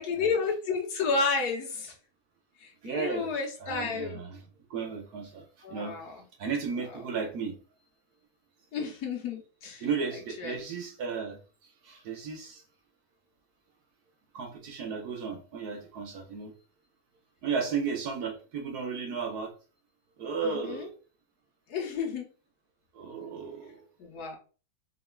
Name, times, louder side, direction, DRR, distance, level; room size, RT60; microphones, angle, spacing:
voice 1, 0.0-1.9 2.6-4.2 5.6-6.2 8.7-9.9 10.4-10.6 20.4-20.9 21.7-22.3 24.0-24.4, left 4 dB, 65° left, 1 dB, 1.3 m, -31 dB
voice 2, 2.8-3.3 3.6-4.4 4.7-5.4 5.7-6.0 6.4-7.5 9.8-11.4 11.8-12.6 14.3-16.5 17.4-19.5 20.2-20.9 22.9-23.8, right 5 dB, 65° right, 3 dB, 1.3 m, -34 dB
4.0 x 3.8 x 2.3 m, 0.36 s
omnidirectional pair, 1.9 m